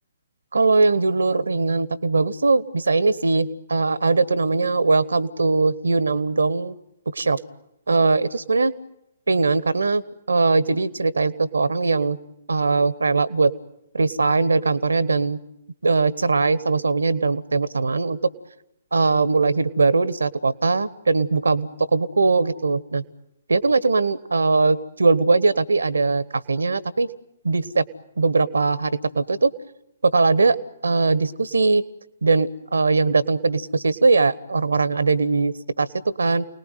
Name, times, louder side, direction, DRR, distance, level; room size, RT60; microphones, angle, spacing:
voice 1, 0.5-6.7 7.1-7.4 7.9-8.7 9.3-10.0 10.3-12.2 12.5-13.5 13.9-15.4 15.8-18.3 18.9-23.0 23.5-27.1 27.4-27.8 28.2-29.5 30.0-30.6 30.8-31.8 32.2-36.4, right 3 dB, 70° right, 17 dB, 1.3 m, -20 dB
29.0 x 19.5 x 9.3 m, 0.83 s
figure-of-eight pair, 125°, 0 cm